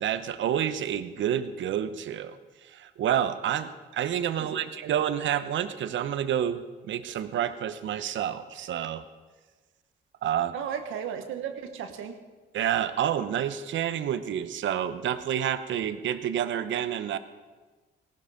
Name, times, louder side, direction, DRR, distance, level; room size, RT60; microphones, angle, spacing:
voice 1, 0.0-2.4 2.7-9.0 10.2-10.5 12.5-17.2, right 10 dB, 70° right, 12 dB, 1.0 m, -29 dB
voice 2, 4.4-4.9 10.5-12.2, right 8 dB, 85° right, 6 dB, 1.4 m, -35 dB
18.0 x 12.0 x 5.1 m, 1.3 s
cardioid pair, 90°, 20 cm